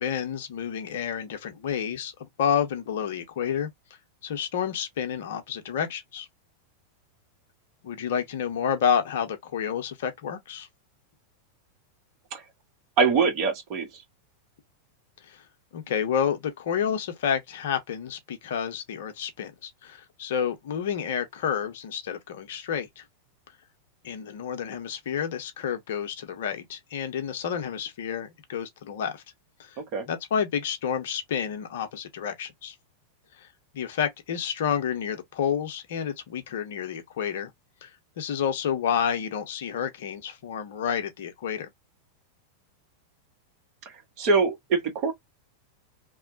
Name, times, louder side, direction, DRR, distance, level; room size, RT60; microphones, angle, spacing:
voice 1, 0.0-3.7 4.2-6.3 7.8-10.7 15.3-15.4 15.7-23.0 24.0-29.2 29.6-29.8 30.1-32.7 33.4-33.5 33.7-37.5 37.8-37.9 38.2-41.7, left 8 dB, 55° left, 0.7 m, -30 dB
voice 2, 13.0-14.0 29.8-30.0 44.2-45.1, right 4 dB, 40° right, 1.0 m, -24 dB
3.0 x 2.1 x 2.5 m
figure-of-eight pair, 90°, 0 cm